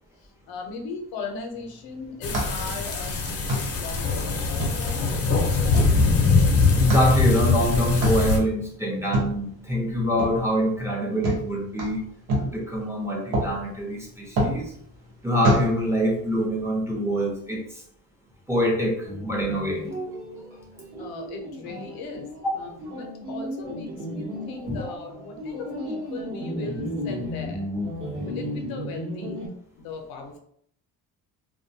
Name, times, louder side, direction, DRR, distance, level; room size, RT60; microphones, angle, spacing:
voice 1, 0.2-5.2 21.0-27.6 28.2-29.4 29.7-30.4, left 3 dB, 80° left, 3 dB, 0.7 m, -38 dB
sound 1, 1.5-16.4, right 1 dB, 80° right, 0.9 m, -30 dB
sound 2, 2.2-8.4, left 4 dB, 40° left, 0.6 m, -22 dB
voice 2, 6.7-12.0 12.4-14.7 15.2-17.6 18.5-19.8 22.4-22.5 24.7-24.8, equal, 10° right, -3 dB, 0.6 m, -25 dB
sound 3, 19.0-29.5, equal, 40° right, 0.9 m, -34 dB
2.2 x 2.2 x 2.7 m, 0.64 s
cardioid pair, 120°, 36 cm